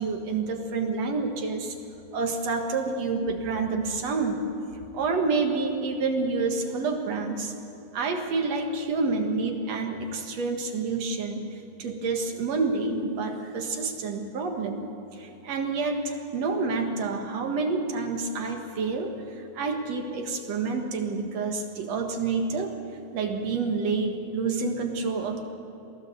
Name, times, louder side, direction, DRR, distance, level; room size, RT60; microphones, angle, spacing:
voice 1, 0.0-1.8 2.1-4.5 4.9-7.5 7.9-11.5 11.8-22.7 23.1-25.4, right 4 dB, 65° right, 4 dB, 2.8 m, -28 dB
22.5 x 16.0 x 7.9 m, 2.7 s
omnidirectional pair, 3.4 m